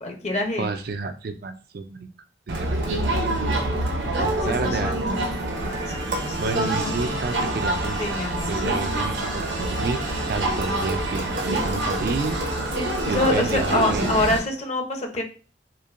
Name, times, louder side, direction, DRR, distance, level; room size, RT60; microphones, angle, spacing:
voice 1, 0.0-0.7 4.4-4.9 5.8-6.4 6.8-6.9 8.0-8.6 13.1-15.2, left 1 dB, 35° left, 4 dB, 0.7 m, -25 dB
voice 2, 0.6-2.1 2.5-3.3 4.2-5.1 6.4-8.2 8.5-12.4 13.0-14.2, right 4 dB, 55° right, 8 dB, 0.4 m, -30 dB
Crowd, 2.5-14.4, right 1 dB, 80° right, 0.8 m, -26 dB
4.3 x 2.6 x 2.5 m, 0.37 s
head